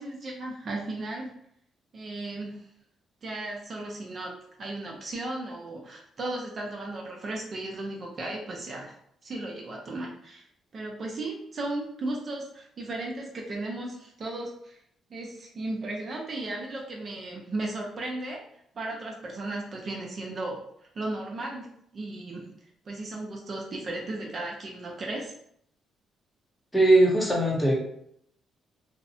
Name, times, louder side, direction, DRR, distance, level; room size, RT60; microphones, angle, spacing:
voice 1, 0.0-1.3 1.9-2.6 3.2-4.3 4.6-8.9 9.2-10.4 10.7-14.7 15.1-18.4 18.8-20.6 20.9-22.5 22.9-25.3, right 2 dB, 45° right, -1 dB, 0.6 m, -35 dB
voice 2, 26.7-27.8, right 1 dB, 10° left, -2 dB, 0.7 m, -20 dB
2.5 x 2.0 x 2.7 m, 0.70 s
cardioid pair, 90°, 0 cm